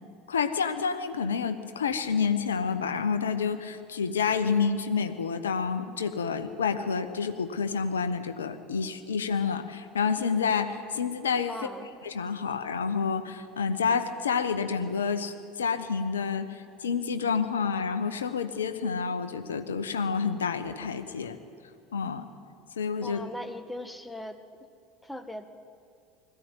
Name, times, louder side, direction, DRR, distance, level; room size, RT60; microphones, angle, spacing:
voice 1, 0.3-11.7 12.0-21.4 21.9-22.3 22.8-23.2, left 6 dB, 75° left, 9 dB, 1.1 m, -29 dB
voice 2, 11.5-11.9 23.0-24.4 25.0-25.5, left 1 dB, 5° left, 8 dB, 1.5 m, -39 dB
20.5 x 15.0 x 9.2 m, 2.4 s
figure-of-eight pair, 70°, 0 cm